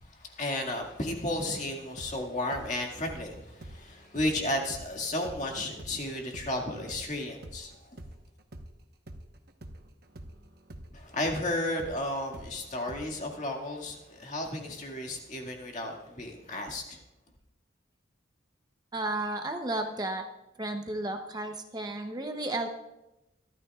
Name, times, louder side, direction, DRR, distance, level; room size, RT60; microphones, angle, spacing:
voice 1, 0.0-8.0 10.9-17.0, left 1 dB, 40° left, 1 dB, 2.0 m, -33 dB
sound 1, 1.8-8.7 9.1-13.3, right 1 dB, 50° right, 1.0 m, -47 dB
voice 2, 18.9-20.2 20.6-22.7, right 2 dB, 20° right, 5 dB, 0.7 m, -33 dB
24.0 x 12.5 x 2.4 m, 0.93 s
head